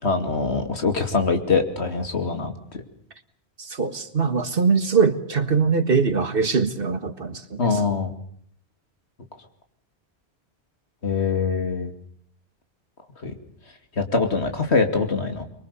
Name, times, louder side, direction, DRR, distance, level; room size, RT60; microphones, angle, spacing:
voice 1, 0.0-2.5 7.6-8.1 11.0-11.9 13.2-13.3 14.0-15.4, left 4 dB, 75° left, 6 dB, 2.8 m, -23 dB
voice 2, 3.6-7.8, right 5 dB, 55° right, 10 dB, 1.8 m, -22 dB
24.5 x 23.0 x 6.9 m, 0.63 s
omnidirectional pair, 1.1 m